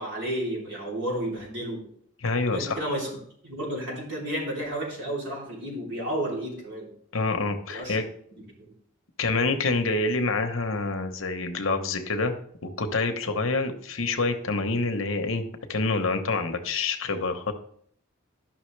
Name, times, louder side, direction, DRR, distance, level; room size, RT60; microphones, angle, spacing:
voice 1, 0.0-1.9 2.5-3.1 3.4-6.9 7.7-8.0, right 1 dB, 60° right, -4 dB, 3.3 m, -31 dB
voice 2, 2.2-2.8 7.1-8.0 9.2-12.3 12.6-15.4 15.7-17.5, left 3 dB, 70° left, 6 dB, 1.0 m, -27 dB
11.0 x 5.9 x 3.3 m, 0.63 s
head